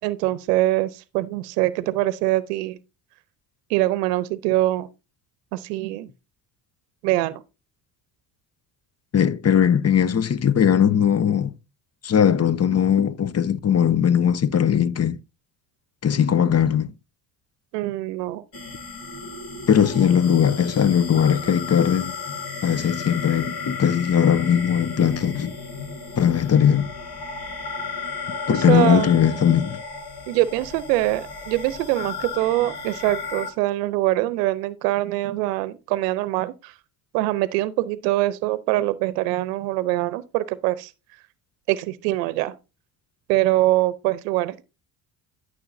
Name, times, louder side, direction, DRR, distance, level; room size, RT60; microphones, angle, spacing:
voice 1, 0.0-2.8 3.7-4.9 5.5-6.1 7.0-7.4 17.7-18.4 28.5-29.1 30.3-36.7 37.1-40.9 41.7-42.6 43.3-44.6, right 16 dB, 90° right, 0.7 m, -23 dB
voice 2, 9.1-11.5 12.0-15.2 16.0-16.9 19.7-22.2 22.6-25.5 26.2-26.9 28.5-29.8, left 8 dB, 35° left, 0.7 m, -19 dB
sound 1, 18.5-33.5, left 4 dB, 50° left, 3.2 m, -34 dB
13.0 x 6.3 x 2.6 m
hypercardioid pair, 60°, 47 cm